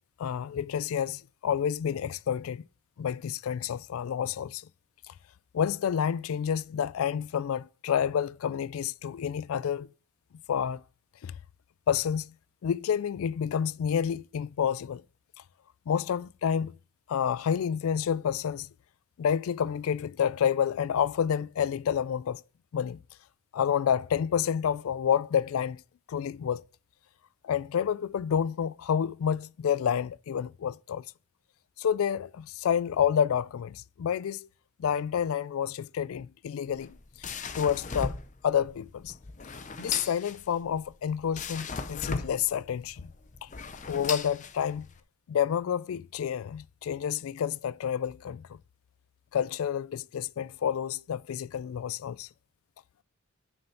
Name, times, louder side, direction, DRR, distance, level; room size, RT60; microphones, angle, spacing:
voice 1, 0.2-2.6 3.0-4.7 5.1-5.2 5.5-9.9 10.5-10.8 11.2-11.3 11.9-12.3 12.6-15.0 15.9-16.8 17.1-18.7 19.2-22.4 22.7-23.0 23.5-25.8 26.1-26.6 27.4-31.0 31.8-34.5 34.8-37.0 37.5-38.2 38.4-39.1 39.8-43.1 43.4-43.5 43.9-44.9 45.3-48.6 49.3-52.3, left 8 dB, 70° left, 0.3 m, -29 dB
sound 1, 36.6-45.0, left 4 dB, 35° left, 0.6 m, -37 dB
6.9 x 6.5 x 5.6 m
head